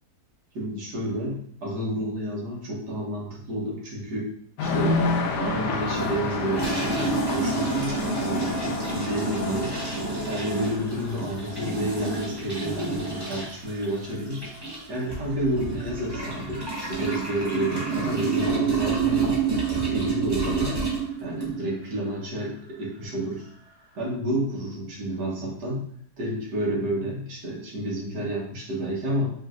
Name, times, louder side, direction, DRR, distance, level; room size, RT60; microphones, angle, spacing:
voice 1, 0.6-4.3 4.6-5.0 5.4-9.8 10.2-14.4 14.9-19.4 19.7-20.8 21.2-23.4 24.0-25.8 26.2-29.3, right 1 dB, 80° right, -3 dB, 1.8 m, -30 dB
sound 1, 4.6-12.9, left 3 dB, 80° left, 1.2 m, -30 dB
sound 2, 5.9-21.7, right 4 dB, 20° right, 0.9 m, -29 dB
5.3 x 2.8 x 2.4 m, 0.63 s
omnidirectional pair, 1.8 m